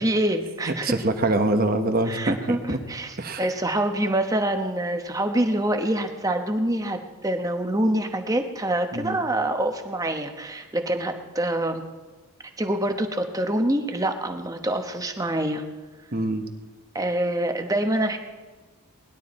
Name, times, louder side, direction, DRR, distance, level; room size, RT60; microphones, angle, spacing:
voice 1, 0.0-0.9 2.1-2.6 2.9-11.8 12.6-15.6 16.9-18.2, right 1 dB, 15° right, 5 dB, 1.0 m, -25 dB
voice 2, 0.7-2.8 3.2-3.5 8.9-9.2 16.1-16.4, right 2 dB, 45° right, 6 dB, 1.1 m, -24 dB
20.0 x 11.5 x 4.2 m, 1.3 s
head